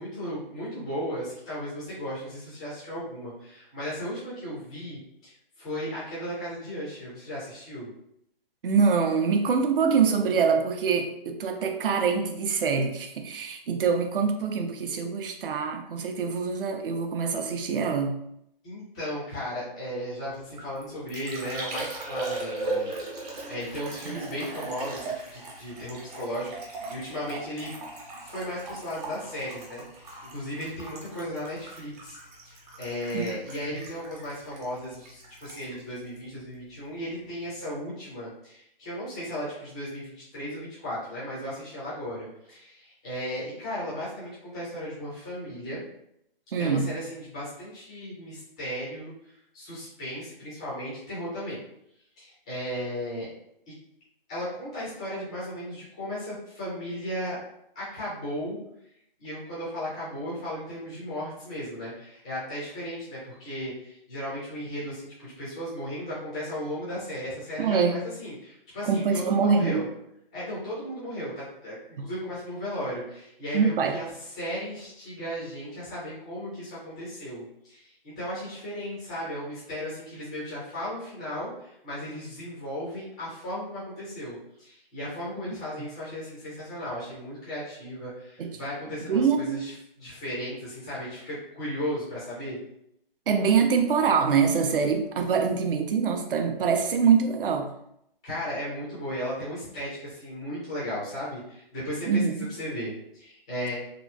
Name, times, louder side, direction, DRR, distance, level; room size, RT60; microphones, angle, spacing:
voice 1, 0.0-7.9 18.6-22.9 23.5-27.7 28.2-32.2 32.4-45.8 46.6-49.1 49.5-51.6 52.2-53.3 54.3-57.4 57.7-58.6 59.2-69.8 70.3-74.1 74.4-89.7 90.0-92.6 98.2-102.2 102.6-103.7, equal, 5° left, -9 dB, 0.3 m, -35 dB
voice 2, 8.6-18.1 24.1-24.2 33.1-33.3 46.5-46.9 67.6-68.0 68.8-69.8 73.5-73.9 88.4-88.5 89.1-89.6 93.3-97.7 102.1-102.5, right 6 dB, 65° right, 5 dB, 0.6 m, -24 dB
Liquid, 20.3-37.0 37.2-37.8, right 2 dB, 45° right, 0.9 m, -38 dB
2.9 x 2.5 x 2.2 m, 0.75 s
hypercardioid pair, 150°, 29 cm